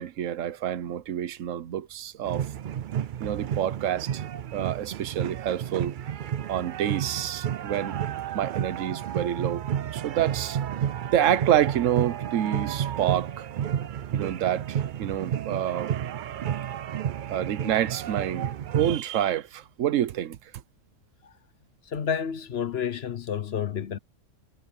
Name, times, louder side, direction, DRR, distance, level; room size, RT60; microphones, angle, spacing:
voice 1, 0.0-2.5 3.2-4.2 4.5-6.0 6.5-8.0 8.3-9.6 9.9-10.6 11.1-13.5 14.1-15.9 17.3-20.4, right 11 dB, 80° right, 1.2 m, -27 dB
sound 1, 2.2-19.0, right 9 dB, 65° right, 0.5 m, -31 dB
voice 2, 21.9-24.0, left 8 dB, 55° left, 1.0 m, -30 dB
omnidirectional pair, 1.3 m